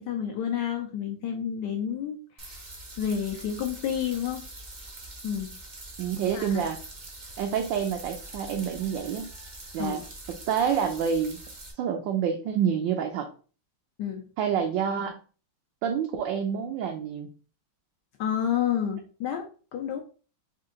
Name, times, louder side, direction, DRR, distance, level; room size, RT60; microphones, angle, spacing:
voice 1, 0.0-2.6 3.0-4.5 5.2-5.5 6.3-6.7 9.8-10.0 14.0-14.2 18.2-19.5 19.7-20.0, left 9 dB, 75° left, 3 dB, 1.0 m, -30 dB
sound 1, 2.4-11.7, right 2 dB, 50° right, 0.5 m, -44 dB
voice 2, 6.0-6.8 7.4-9.3 9.7-10.0 10.3-11.4 11.8-13.3 14.4-15.2 15.8-17.3, right 7 dB, 75° right, 4 dB, 1.2 m, -28 dB
4.4 x 2.6 x 3.7 m, 0.38 s
omnidirectional pair, 2.3 m